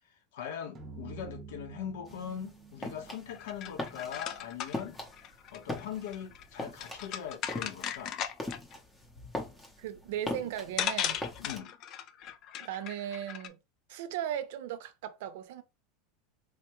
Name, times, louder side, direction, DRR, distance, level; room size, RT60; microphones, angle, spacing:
voice 1, 0.3-5.0 5.5-8.1 11.4-11.7, left 8 dB, 75° left, 1.1 m, -41 dB
sound 1, 0.8-5.1, right 5 dB, 15° right, 0.8 m, -50 dB
sound 2, 2.1-11.6, left 1 dB, 10° left, 0.7 m, -41 dB
sound 3, 3.3-8.7 10.3-10.4 10.8-13.5, left 10 dB, 30° left, 0.3 m, -37 dB
voice 2, 9.8-11.2 12.6-13.6 13.9-15.6, right 10 dB, 65° right, 0.6 m, -37 dB
4.1 x 2.2 x 3.0 m
supercardioid pair, 175°, 0 cm